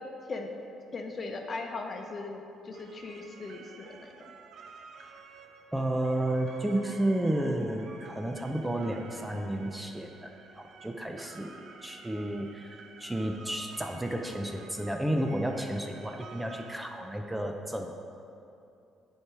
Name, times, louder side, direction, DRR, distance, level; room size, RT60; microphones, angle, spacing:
voice 1, 0.9-2.4 2.6-4.3, left 3 dB, 40° left, 3 dB, 0.9 m, -38 dB
sound 1, 2.7-16.8, right 4 dB, 65° right, 0.6 m, -51 dB
voice 2, 5.7-10.3 10.6-17.9, right 1 dB, 10° right, 3 dB, 0.6 m, -32 dB
9.4 x 4.6 x 4.8 m, 2.7 s
cardioid pair, 85°, 0 cm